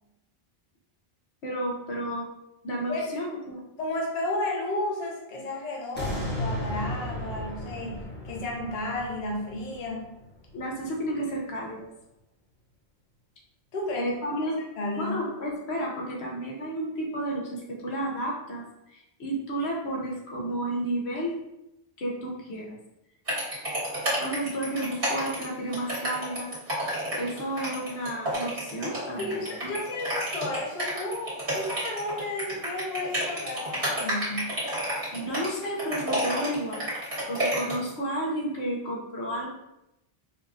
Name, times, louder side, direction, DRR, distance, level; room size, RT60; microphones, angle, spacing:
voice 1, 1.4-2.3 2.6-3.6 10.5-11.9 13.9-14.6 15.0-18.6 18.9-21.3 22.0-22.8 24.2-26.5 27.2-29.7 35.1-36.9 37.3-39.5, right 1 dB, 90° left, -3 dB, 1.1 m, -32 dB
voice 2, 3.8-10.1 13.7-14.1 14.8-15.2 29.2-34.5, left 2 dB, 45° left, -1 dB, 0.7 m, -32 dB
sound 1, 5.9-11.1 11.5-11.6, left 1 dB, 10° left, 0.8 m, -35 dB
sound 2, 23.3-37.9, right 1 dB, 60° right, 1.5 m, -30 dB
4.3 x 2.6 x 2.4 m, 0.86 s
omnidirectional pair, 1.0 m